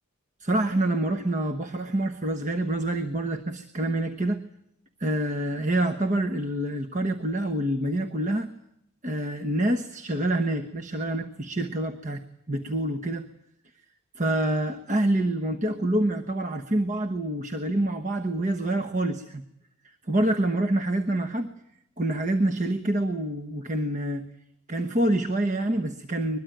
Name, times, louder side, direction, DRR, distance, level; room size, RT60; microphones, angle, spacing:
voice 1, 0.4-4.4 5.0-8.5 9.0-12.2 12.5-13.3 14.1-19.4 20.1-21.5 22.0-24.2 24.7-26.4, right 1 dB, 35° right, 7 dB, 1.1 m, -26 dB
22.0 x 22.0 x 9.1 m, 0.78 s
head